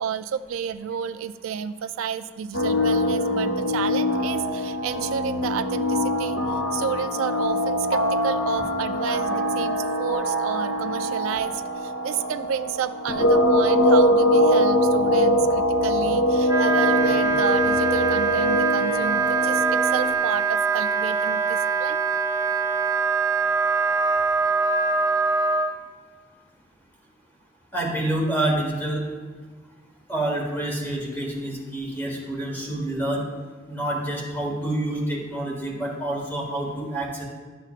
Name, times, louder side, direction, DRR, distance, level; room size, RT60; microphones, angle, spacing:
voice 1, 0.0-22.0, right 7 dB, 90° right, 11 dB, 0.3 m, -30 dB
sound 1, 2.5-20.1, left 1 dB, 60° left, 0.7 m, -23 dB
Wind instrument woodwind instrument, 16.4-25.7, right 5 dB, 15° right, 0.4 m, -23 dB
voice 2, 27.7-29.0 30.1-33.3 33.7-37.3, right 1 dB, 10° left, -2 dB, 1.4 m, -27 dB
11.5 x 6.9 x 2.5 m, 1.5 s
head